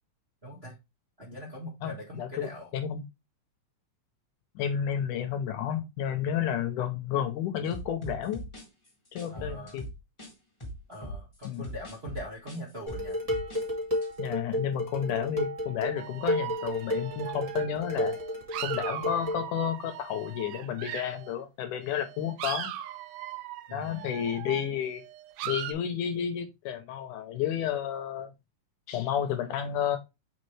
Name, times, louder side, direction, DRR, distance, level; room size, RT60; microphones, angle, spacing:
voice 1, 0.4-0.8 1.2-2.7 9.3-9.8 10.9-13.2 23.7-24.1, left 1 dB, 40° right, 0.8 m, -42 dB
voice 2, 1.8-3.0 4.6-8.4 9.1-9.8 11.4-11.7 14.2-18.2 18.6-22.7 23.7-25.0 25.5-28.3 28.9-30.0, left 9 dB, 75° left, 2.2 m, -31 dB
sound 1, 7.7-10.3 10.6-13.6 13.9-14.1, equal, 15° left, 1.2 m, -41 dB
Dishes pots and pans, 12.9-19.5, left 1 dB, 60° right, 0.3 m, -32 dB
sound 2, 16.0-21.3 21.8-25.7, right 13 dB, 85° right, 2.4 m, -39 dB
6.5 x 4.9 x 3.2 m
omnidirectional pair, 4.0 m